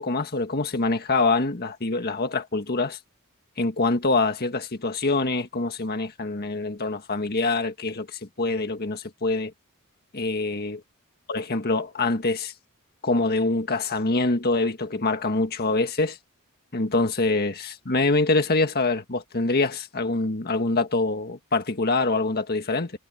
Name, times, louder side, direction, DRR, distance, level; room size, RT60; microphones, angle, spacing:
voice 1, 0.0-3.0 3.6-9.5 10.1-10.8 11.3-12.5 13.0-16.2 16.7-22.9, left 3 dB, 45° left, 1.7 m, -25 dB
head